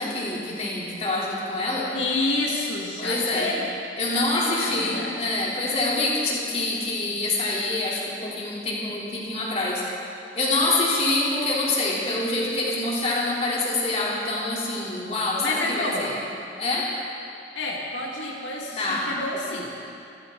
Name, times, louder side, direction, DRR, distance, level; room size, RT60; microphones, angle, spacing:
voice 1, 0.0-1.9 3.0-3.5 4.0-9.8 10.3-16.2 16.6-16.9 18.8-19.1, left 2 dB, 35° left, -5 dB, 3.4 m, -26 dB
voice 2, 1.9-3.8 4.1-5.2 15.4-16.1 17.6-19.8, left 2 dB, 80° left, -3 dB, 2.0 m, -29 dB
26.0 x 14.0 x 3.9 m, 2.6 s
head